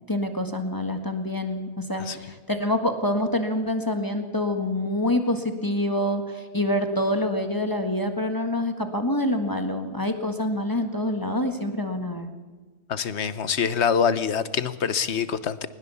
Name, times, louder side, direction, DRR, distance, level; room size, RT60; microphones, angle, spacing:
voice 1, 0.1-12.3, left 1 dB, 20° left, 6 dB, 1.7 m, -26 dB
voice 2, 12.9-15.7, left 7 dB, 90° left, 14 dB, 1.3 m, -25 dB
21.5 x 19.5 x 7.1 m, 1.3 s
omnidirectional pair, 1.1 m